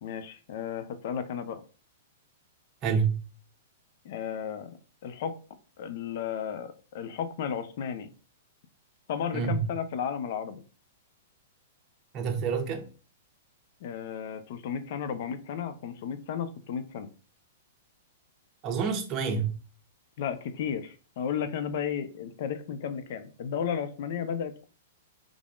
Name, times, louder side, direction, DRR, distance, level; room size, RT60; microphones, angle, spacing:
voice 1, 0.0-1.6 4.0-4.8 5.0-5.3 5.8-8.1 9.1-10.6 13.8-17.1 20.2-24.6, left 8 dB, 60° left, 0.5 m, -33 dB
voice 2, 2.8-3.2 9.3-9.6 12.1-12.9 18.6-19.5, right 6 dB, 30° right, 0.9 m, -28 dB
3.5 x 3.4 x 2.4 m
hypercardioid pair, 120°, 0 cm